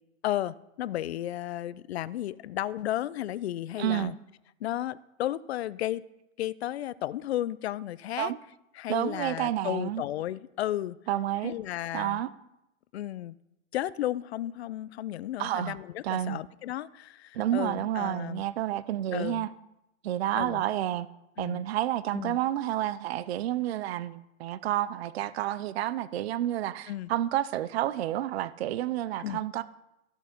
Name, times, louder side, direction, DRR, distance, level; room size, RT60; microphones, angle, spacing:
voice 1, 0.2-4.2 4.6-6.0 6.4-8.3 8.8-11.0 11.4-12.2 12.9-13.4 13.7-18.4 19.1-19.5 20.3-20.6 21.4-21.7 22.1-22.4 26.9-27.1 29.2-29.4, left 13 dB, 55° left, 0.5 m, -33 dB
voice 2, 3.8-4.1 8.2-8.4 8.9-10.0 11.1-11.6 11.9-12.3 15.4-15.8 16.0-16.4 17.3-19.5 20.0-21.1 21.4-29.6, right 13 dB, 50° right, 0.5 m, -30 dB
14.0 x 6.3 x 5.2 m
hypercardioid pair, 155°, 40 cm